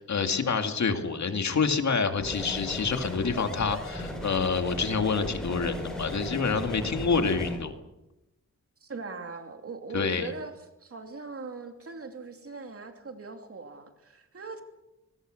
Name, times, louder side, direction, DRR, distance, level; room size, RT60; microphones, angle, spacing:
voice 1, 0.0-7.7 9.9-10.3, left 5 dB, 65° left, 6 dB, 2.2 m, -27 dB
sound 1, 2.2-7.6, left 1 dB, ahead, 7.7 m, -36 dB
voice 2, 8.8-10.5 10.8-14.6, right 4 dB, 50° right, 5 dB, 2.9 m, -40 dB
25.5 x 21.0 x 6.4 m, 0.95 s
wide cardioid pair, 130°, 30 cm